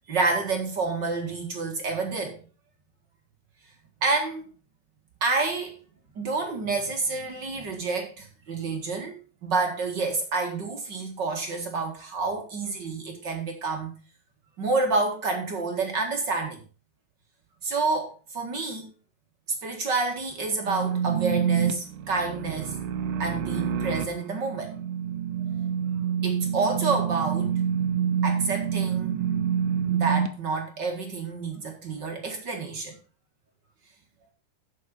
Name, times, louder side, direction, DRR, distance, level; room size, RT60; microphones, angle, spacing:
voice 1, 0.1-2.4 4.0-4.5 5.2-5.7 6.1-14.0 14.6-16.6 17.6-18.9 19.6-22.8 23.2-24.7 26.2-27.5 28.2-29.3 29.9-33.0, right 3 dB, 45° right, 1.5 m, -29 dB
sound 1, 20.6-30.3, right 8 dB, 75° right, 1.8 m, -27 dB
9.2 x 7.3 x 5.2 m
omnidirectional pair, 4.7 m